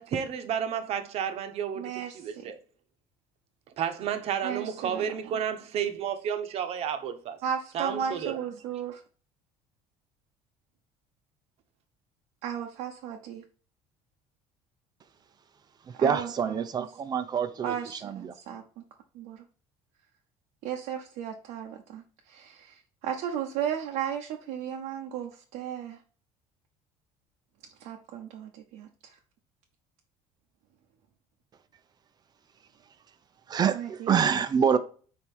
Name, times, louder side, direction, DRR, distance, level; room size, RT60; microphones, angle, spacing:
voice 1, 0.0-2.6 3.8-7.4 7.7-8.4, right 8 dB, 55° right, 1.0 m, -31 dB
voice 2, 1.8-2.5 4.4-5.1 7.4-9.0 12.4-13.4 16.0-16.9 17.6-18.8 19.1-19.4 20.6-26.0 27.8-29.2 33.7-34.2, right 9 dB, 80° right, 0.9 m, -35 dB
voice 3, 15.8-17.7 18.0-18.3 33.5-34.8, right 7 dB, 35° right, 0.6 m, -26 dB
4.6 x 4.3 x 5.4 m
cardioid pair, 125°, 12 cm